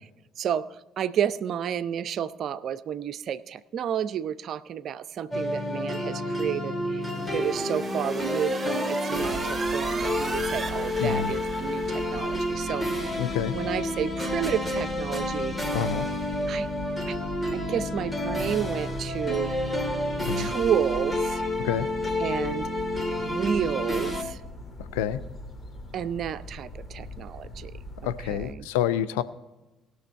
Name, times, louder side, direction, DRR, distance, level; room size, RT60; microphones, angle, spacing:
voice 1, 0.4-13.2 13.5-15.6 16.5-16.7 17.1-17.2 17.5-19.5 20.4-21.4 22.2-22.7 23.2-24.4 25.9-28.7, right 9 dB, 55° right, 15 dB, 0.5 m, -31 dB
sound 1, 5.3-24.2, left 1 dB, 20° left, 2.0 m, -29 dB
sound 2, 7.0-12.6, right 4 dB, 30° right, 1.1 m, -37 dB
sound 3, 9.1-28.5, left 1 dB, 35° left, 1.7 m, -41 dB
voice 2, 11.0-11.3 13.2-13.5 15.7-16.1 20.3-20.5 21.6-21.9 24.9-25.2 28.0-29.2, left 10 dB, 70° left, 14 dB, 0.5 m, -27 dB
19.5 x 6.5 x 4.5 m, 1.1 s
figure-of-eight pair, 50°, 0 cm